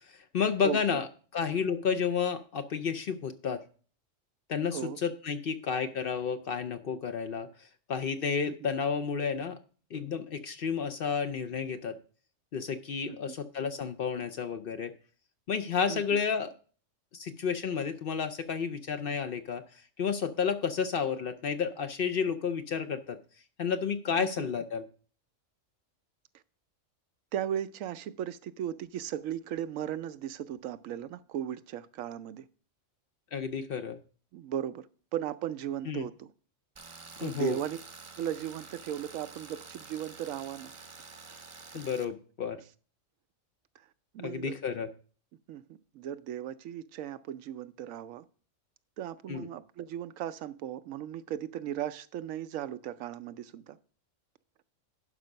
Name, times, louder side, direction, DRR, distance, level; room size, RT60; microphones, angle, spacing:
voice 1, 0.1-1.1 1.3-3.6 4.5-9.6 9.9-12.0 12.5-14.9 15.5-16.5 17.1-19.6 20.0-23.2 23.6-24.8 33.3-34.0 35.9-36.1 37.2-37.6 41.7-42.6 44.2-44.9 49.3-49.5, left 6 dB, 55° left, 0.7 m, -31 dB
voice 2, 0.6-1.0 4.7-5.0 8.4-8.5 13.1-13.4 15.9-16.2 24.2-24.5 27.3-32.4 34.3-34.9 35.1-36.3 37.2-37.8 38.2-40.7 41.0-41.4 43.8-43.9 44.1-44.6 45.5-48.2 49.0-53.8, right 10 dB, 85° right, 1.0 m, -37 dB
Tools, 36.8-42.0, right 4 dB, 30° right, 0.6 m, -48 dB
11.0 x 4.8 x 5.3 m
omnidirectional pair, 1.3 m